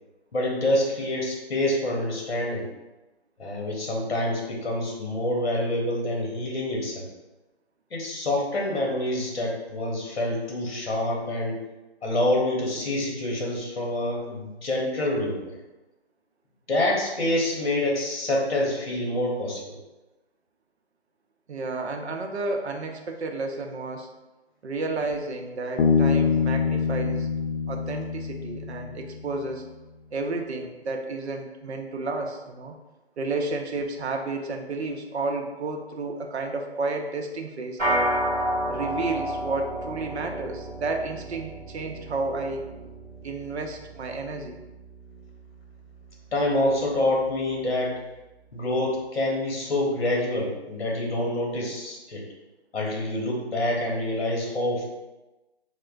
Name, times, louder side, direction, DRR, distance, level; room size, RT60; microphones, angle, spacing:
voice 1, 0.3-2.7 3.4-7.1 7.9-11.6 12.0-15.4 16.7-19.8 46.3-48.0 48.5-52.2 52.7-54.8, left 1 dB, 65° left, -2 dB, 1.0 m, -26 dB
voice 2, 21.5-24.1 24.6-27.3 27.7-29.6 30.1-32.7 33.2-38.1 38.7-42.6 43.2-44.6, right 3 dB, 75° right, 3 dB, 0.6 m, -31 dB
Bass guitar, 25.8-29.3, left 5 dB, 90° left, 0.6 m, -25 dB
sound 1, 37.8-47.3, right 1 dB, 10° right, 1.4 m, -32 dB
4.2 x 2.1 x 2.4 m, 1.1 s
hypercardioid pair, 175°, 33 cm